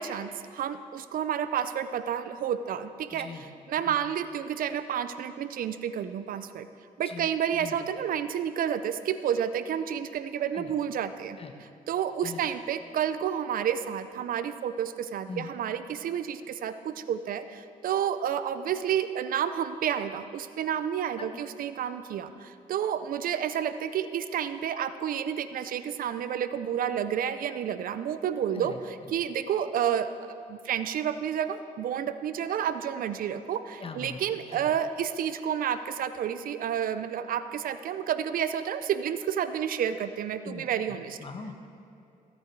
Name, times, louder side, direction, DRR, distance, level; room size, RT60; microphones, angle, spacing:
voice 1, 0.0-3.3 3.7-6.7 7.0-11.4 11.9-28.7 29.1-30.1 30.5-41.2, right 9 dB, 70° right, 12 dB, 0.6 m, -30 dB
voice 2, 3.1-3.5 3.8-4.0 7.0-7.9 10.5-10.7 11.4-11.5 12.2-12.4 15.3-15.5 21.2-21.4 28.5-29.1 33.8-34.8 40.4-41.6, left 4 dB, 40° left, 5 dB, 1.3 m, -42 dB
16.0 x 8.7 x 4.7 m, 2.7 s
cardioid pair, 80°, 15 cm